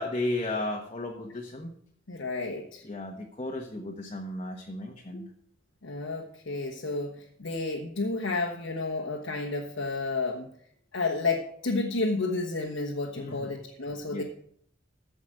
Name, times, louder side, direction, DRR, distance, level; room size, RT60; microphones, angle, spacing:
voice 1, 0.0-1.7 2.8-5.3 13.2-13.5 14.1-14.2, left 2 dB, 30° left, 0 dB, 1.2 m, -34 dB
voice 2, 2.1-2.8 5.8-10.5 10.9-14.2, left 3 dB, 80° left, 0 dB, 1.3 m, -31 dB
15.0 x 5.2 x 6.4 m, 0.65 s
head